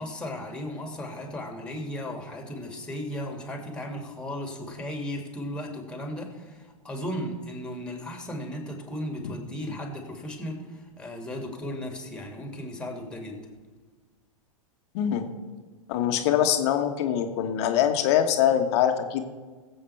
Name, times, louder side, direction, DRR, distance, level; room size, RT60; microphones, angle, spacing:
voice 1, 0.0-13.4, left 1 dB, 5° left, 2 dB, 2.5 m, -36 dB
voice 2, 14.9-15.3 15.9-19.3, left 10 dB, 50° left, 6 dB, 1.3 m, -23 dB
22.0 x 7.9 x 3.5 m, 1.4 s
figure-of-eight pair, 100°, 18 cm